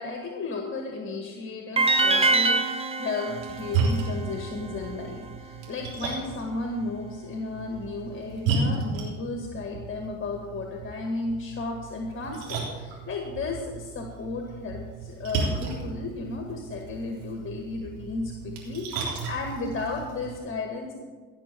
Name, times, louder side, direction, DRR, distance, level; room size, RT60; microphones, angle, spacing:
voice 1, 0.0-20.9, left 3 dB, 30° left, 2 dB, 1.9 m, -34 dB
sound 1, 1.8-4.9, right 3 dB, 15° right, 1.3 m, -25 dB
Splash splatter, 3.3-20.4, right 4 dB, 65° right, 3.7 m, -34 dB
17.0 x 6.2 x 6.9 m, 1.4 s
hypercardioid pair, 65°, 38 cm